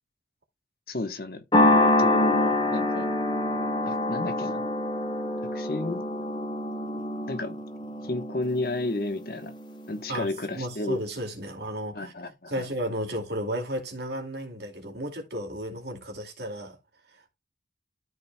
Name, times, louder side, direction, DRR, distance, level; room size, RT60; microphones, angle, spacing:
voice 1, 0.9-1.4 1.7-3.1 3.9-4.7 5.5-6.0 7.3-7.6 8.0-9.5 9.9-11.0 11.9-12.7, left 2 dB, 55° left, 1.2 m, -32 dB
sound 1, 1.5-10.0, left 2 dB, 25° left, 1.3 m, -26 dB
voice 2, 10.1-12.2 12.5-16.8, equal, 65° right, 2.4 m, -33 dB
13.0 x 4.5 x 2.3 m
head